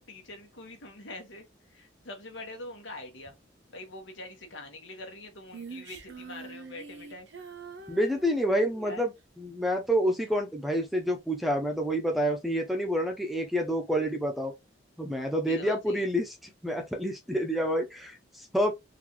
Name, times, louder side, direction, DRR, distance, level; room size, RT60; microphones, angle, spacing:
voice 1, 0.0-3.4 3.7-7.3 8.8-9.0 15.4-16.1, left 2 dB, 85° left, 1.3 m, -44 dB
Female singing, 5.5-9.0, right 4 dB, 65° right, 0.8 m, -45 dB
voice 2, 7.9-9.1 9.4-14.5 15.0-16.3 16.6-18.7, equal, ahead, 0.6 m, -28 dB
4.0 x 2.6 x 3.0 m
head